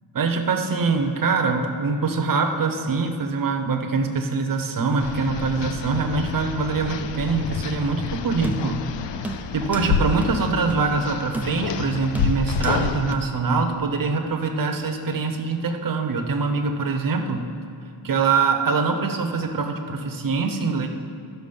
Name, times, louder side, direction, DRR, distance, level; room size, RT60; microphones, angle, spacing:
voice 1, 0.1-8.8 9.2-17.5 18.0-20.9, right 4 dB, 45° right, 4 dB, 0.9 m, -24 dB
sound 1, 5.0-13.1, left 6 dB, 65° left, 0.6 m, -29 dB
sound 2, 8.4-8.9 9.2-9.9 10.2-10.3 10.7-10.9 11.3-11.8 12.1-12.8 13.1-13.2, right 1 dB, 5° right, 0.4 m, -32 dB
13.0 x 6.1 x 5.3 m, 2.6 s
wide cardioid pair, 175°, 47 cm